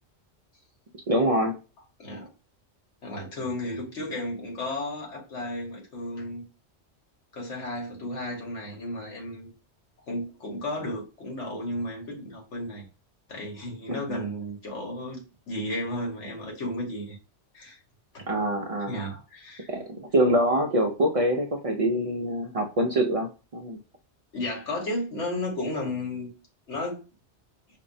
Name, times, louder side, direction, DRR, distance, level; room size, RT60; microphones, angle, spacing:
voice 1, 1.1-1.5 13.9-14.2 18.3-19.0 19.7-23.8, right 1 dB, 65° right, 3 dB, 0.3 m, -25 dB
voice 2, 3.0-6.4 7.3-9.5 10.1-12.8 13.3-15.2 15.5-17.2 17.5-17.8 18.1-18.2 18.9-19.7 24.3-26.3 26.7-27.0, left 1 dB, 85° left, -1 dB, 1.6 m, -33 dB
5.0 x 2.0 x 2.6 m, 0.32 s
omnidirectional pair, 1.2 m